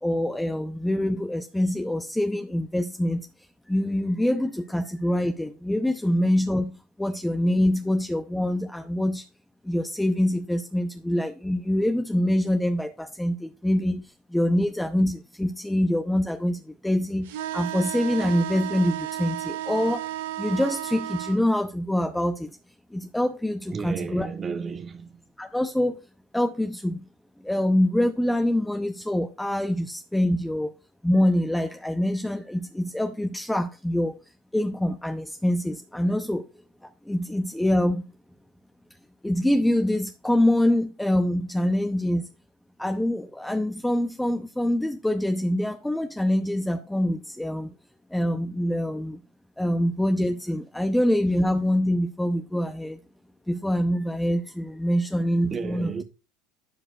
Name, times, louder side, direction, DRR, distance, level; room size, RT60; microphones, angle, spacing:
voice 1, 0.0-3.2 3.7-9.2 9.6-20.1 20.4-22.6 22.9-24.3 25.4-26.0 26.3-27.1 27.4-30.7 31.0-34.2 34.5-36.5 36.8-38.1 39.2-42.3 42.8-47.7 48.1-49.2 49.6-53.0 53.5-55.9, left 1 dB, 5° left, 0.6 m, -25 dB
sound 1, 17.3-21.4, right 13 dB, 80° right, 0.8 m, -33 dB
voice 2, 23.7-25.2 55.5-56.0, right 5 dB, 30° right, 0.8 m, -32 dB
14.0 x 4.9 x 2.4 m
supercardioid pair, 95°, 0 cm